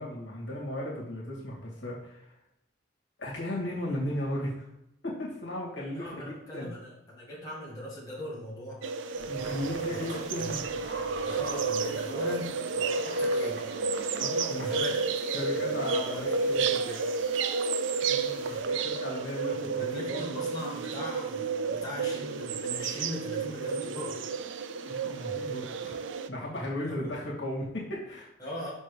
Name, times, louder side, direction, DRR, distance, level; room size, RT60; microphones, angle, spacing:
voice 1, 0.0-2.3 3.2-4.7 5.0-6.7 9.3-11.0 14.2-14.9 15.3-16.8 18.5-20.4 24.8-26.0 26.3-28.3, left 1 dB, 75° left, -4 dB, 2.4 m, -36 dB
voice 2, 5.9-8.8 9.4-9.5 9.9-10.5 11.2-13.7 14.6-15.4 16.0-17.0 18.0-18.6 19.6-24.2 25.4-25.5 26.8-27.1 28.4-28.7, left 1 dB, 20° left, -6 dB, 2.0 m, -40 dB
sound 1, 8.8-26.3, right 4 dB, 90° right, 0.5 m, -31 dB
sound 2, 9.1-18.6, right 1 dB, 35° right, 1.7 m, -50 dB
sound 3, 9.4-14.6, right 2 dB, 55° right, 1.3 m, -45 dB
5.9 x 4.5 x 5.0 m, 0.81 s
head